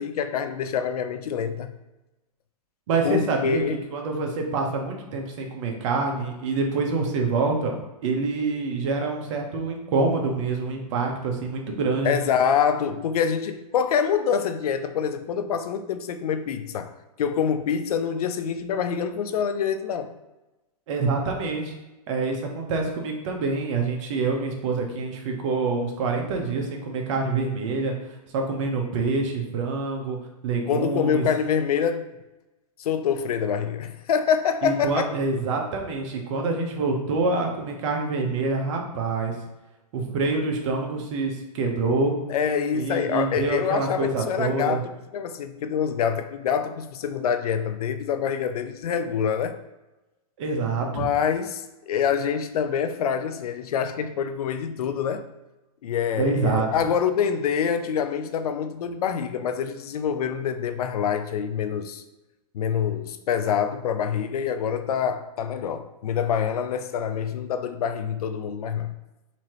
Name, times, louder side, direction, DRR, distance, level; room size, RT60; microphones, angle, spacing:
voice 1, 0.0-1.7 3.0-3.8 12.0-16.9 17.2-20.1 30.7-32.1 32.8-35.1 42.3-49.6 51.0-55.3 55.8-62.0 62.5-68.9, left 7 dB, 75° left, 9 dB, 0.5 m, -26 dB
voice 2, 2.9-3.6 3.9-7.7 8.0-12.1 20.9-21.7 22.1-27.9 28.3-30.2 30.4-31.3 34.6-39.3 39.9-42.2 42.7-44.8 50.4-51.1 56.1-56.7, right 3 dB, 50° right, 2 dB, 1.0 m, -26 dB
4.2 x 2.8 x 3.1 m, 1.0 s
hypercardioid pair, 130°, 20 cm